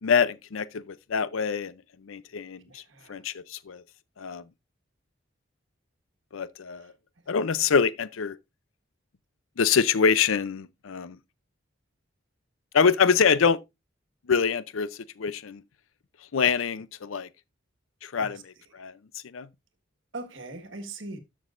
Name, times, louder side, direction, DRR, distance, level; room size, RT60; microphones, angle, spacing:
voice 1, 0.0-1.7 2.1-2.8 3.1-3.8 4.2-4.4 6.3-6.9 7.3-8.4 9.6-11.2 12.7-13.6 14.3-15.6 16.3-17.3 18.0-18.4 18.7-18.9 19.3-19.5, left 6 dB, 85° left, 0.5 m, -25 dB
voice 2, 2.7-3.2 6.8-6.9 18.2-18.4 18.7-18.8 20.1-21.2, right 2 dB, 70° right, 1.5 m, -41 dB
13.0 x 6.2 x 2.5 m
head